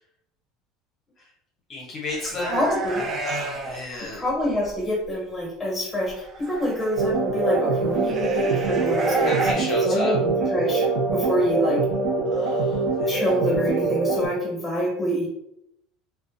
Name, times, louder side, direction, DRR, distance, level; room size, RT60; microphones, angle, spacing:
voice 1, 1.7-2.6 3.2-4.2 9.2-10.2 12.3-13.3, left 3 dB, 40° left, -3 dB, 0.7 m, -33 dB
sound 1, 2.1-3.8 4.3-4.8 6.0-7.1 7.9-9.5, right 3 dB, 40° right, 0.4 m, -31 dB
voice 2, 2.5-3.0 4.1-10.9 11.1-11.8 13.1-15.3, equal, 10° left, -4 dB, 1.4 m, -26 dB
sound 2, 7.0-14.3, right 3 dB, 85° right, 0.6 m, -23 dB
2.4 x 2.2 x 2.5 m, 0.78 s
supercardioid pair, 115°, 0 cm